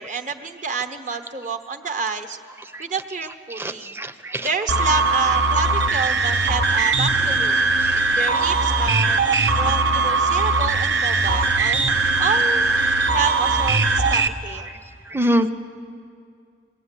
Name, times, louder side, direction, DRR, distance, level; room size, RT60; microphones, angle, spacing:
voice 1, 0.0-2.4 2.8-4.0 4.4-7.6 8.1-11.9 12.2-12.7 13.0-14.8, right 4 dB, 45° right, 7 dB, 1.0 m, -28 dB
voice 2, 3.6-4.5 7.8-8.0 15.1-15.5, equal, 15° right, 10 dB, 0.6 m, -24 dB
sound 1, 4.7-14.3, right 3 dB, 85° right, 1.0 m, -20 dB
22.0 x 15.5 x 9.8 m, 2.3 s
head